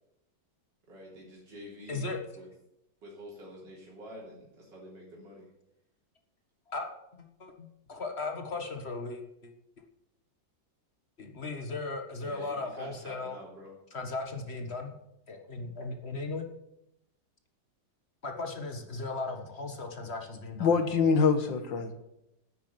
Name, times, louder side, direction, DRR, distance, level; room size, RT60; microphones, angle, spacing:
voice 1, 0.9-2.1 2.3-2.5 3.0-5.5 12.2-13.7, equal, 70° right, -4 dB, 4.1 m, -47 dB
voice 2, 1.9-2.2 6.7-6.8 7.1-9.5 11.2-13.3 13.9-14.9 15.3-16.5 18.2-20.7, left 3 dB, 35° left, 4 dB, 1.8 m, -37 dB
voice 3, 20.6-21.9, left 5 dB, 80° left, 8 dB, 2.2 m, -24 dB
9.3 x 9.3 x 9.4 m, 0.85 s
omnidirectional pair, 2.0 m